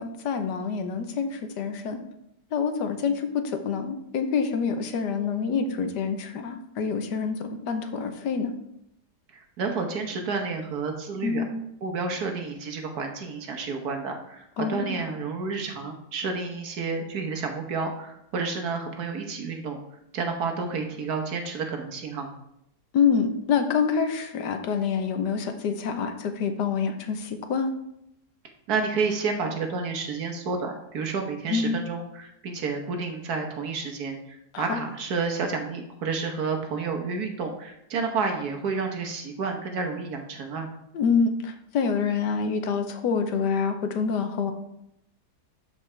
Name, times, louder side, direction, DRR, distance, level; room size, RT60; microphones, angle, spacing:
voice 1, 0.0-2.0 2.5-8.5 11.2-11.6 14.6-15.0 22.9-27.7 31.5-31.8 34.5-34.8 40.9-44.5, left 6 dB, 85° left, 7 dB, 1.4 m, -26 dB
voice 2, 9.6-11.4 11.8-19.8 20.1-22.3 28.7-40.7, right 4 dB, 65° right, 4 dB, 1.5 m, -30 dB
12.5 x 4.9 x 3.3 m, 0.80 s
omnidirectional pair, 1.8 m